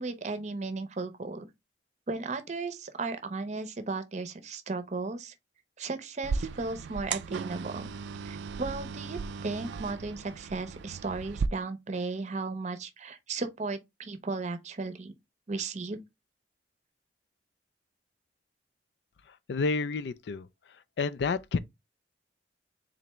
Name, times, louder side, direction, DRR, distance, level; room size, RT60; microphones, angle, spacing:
voice 1, 0.0-1.5 2.1-5.3 5.8-7.9 8.2-15.1 15.5-16.0, right 3 dB, 40° right, 0.6 m, -35 dB
sound 1, 6.2-11.5, right 5 dB, 70° right, 0.3 m, -36 dB
voice 2, 19.5-20.5 21.0-21.6, left 4 dB, 65° left, 0.4 m, -29 dB
3.9 x 3.3 x 3.0 m
head